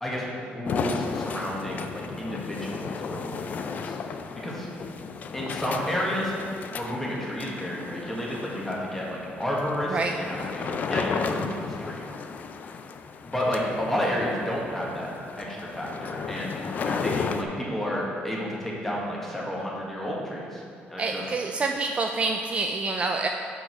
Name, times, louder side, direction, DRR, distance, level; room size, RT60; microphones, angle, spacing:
voice 1, 0.0-4.0 4.4-4.7 5.3-6.3 6.7-12.0 13.2-15.1 15.4-20.6 20.9-21.2, equal, 5° left, -4 dB, 1.5 m, -31 dB
sound 1, 0.7-17.4, left 5 dB, 45° left, 0.4 m, -34 dB
voice 2, 21.0-23.3, right 3 dB, 30° right, 3 dB, 0.4 m, -27 dB
6.3 x 4.8 x 6.1 m, 2.3 s
cardioid pair, 135°, 4 cm